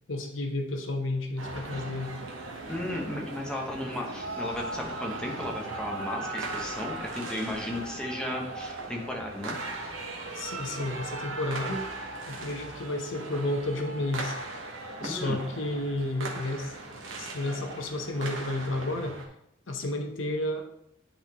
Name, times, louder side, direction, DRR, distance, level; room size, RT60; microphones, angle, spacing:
voice 1, 0.1-2.1 10.3-11.9 12.3-14.3 15.0-16.7 17.2-19.2 19.7-20.6, left 2 dB, 75° left, 4 dB, 0.9 m, -31 dB
sound 1, 1.4-19.3, right 2 dB, 80° right, 1.1 m, -38 dB
voice 2, 2.7-9.6 15.0-15.4, left 1 dB, 5° left, -1 dB, 1.0 m, -35 dB
10.0 x 4.1 x 2.9 m, 0.78 s
head